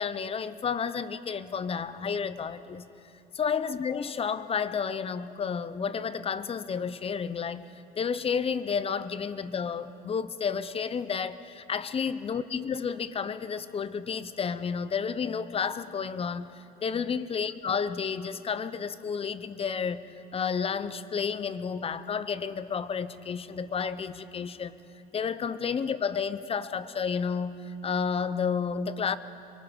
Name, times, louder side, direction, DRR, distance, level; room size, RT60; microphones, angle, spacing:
voice 1, 0.0-2.9 3.4-7.7 8.0-20.0 20.3-24.8 25.1-29.2, left 6 dB, 35° left, 14 dB, 0.8 m, -31 dB
25.0 x 23.0 x 5.5 m, 2.7 s
cardioid pair, 110°, 17 cm